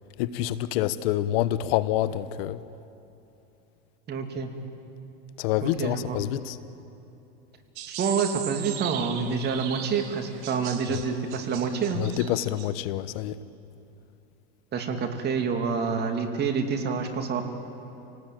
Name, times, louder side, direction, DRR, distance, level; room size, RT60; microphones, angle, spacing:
voice 1, 0.2-2.6 5.4-6.6 10.9-11.0 12.0-13.4, left 13 dB, 70° left, 15 dB, 1.1 m, -27 dB
voice 2, 4.1-4.5 5.6-6.2 8.0-12.0 14.7-17.5, right 5 dB, 30° right, 5 dB, 2.8 m, -27 dB
sound 1, 7.8-12.7, right 10 dB, 60° right, 2.3 m, -38 dB
28.5 x 18.5 x 9.2 m, 2.9 s
supercardioid pair, 130°, 31 cm